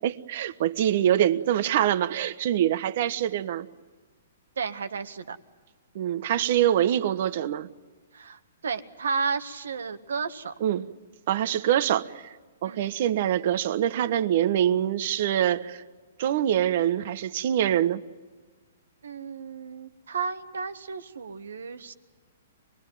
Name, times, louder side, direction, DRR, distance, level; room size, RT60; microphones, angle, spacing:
voice 1, 0.0-3.7 5.9-7.7 10.6-10.9 11.3-12.4 12.6-15.8 16.2-18.0, right 11 dB, 55° right, 13 dB, 1.2 m, -24 dB
voice 2, 4.6-5.4 8.1-10.5 12.6-12.9 19.0-21.9, right 5 dB, 90° right, 10 dB, 1.6 m, -33 dB
25.5 x 21.0 x 9.3 m, 1.3 s
hypercardioid pair, 145°, 0 cm